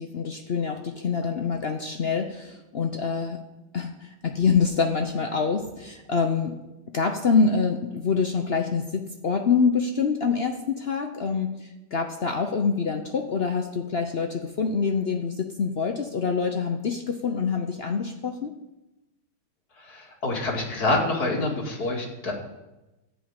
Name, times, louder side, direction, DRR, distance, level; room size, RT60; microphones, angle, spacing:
voice 1, 0.0-3.4 3.7-6.6 6.9-18.5, left 5 dB, 75° left, 4 dB, 0.5 m, -26 dB
voice 2, 19.8-22.3, left 2 dB, 50° left, -2 dB, 2.8 m, -27 dB
13.0 x 5.4 x 8.9 m, 1.0 s
omnidirectional pair, 2.2 m